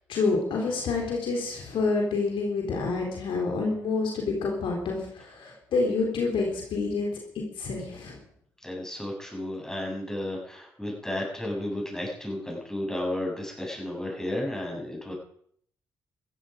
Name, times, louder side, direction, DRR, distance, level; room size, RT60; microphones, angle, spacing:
voice 1, 0.1-7.2 7.6-8.2, left 3 dB, 65° left, 0 dB, 3.7 m, -28 dB
voice 2, 8.6-15.1, left 1 dB, 5° left, -1 dB, 7.6 m, -33 dB
15.0 x 13.5 x 5.1 m, 0.64 s
hypercardioid pair, 40°, 9 cm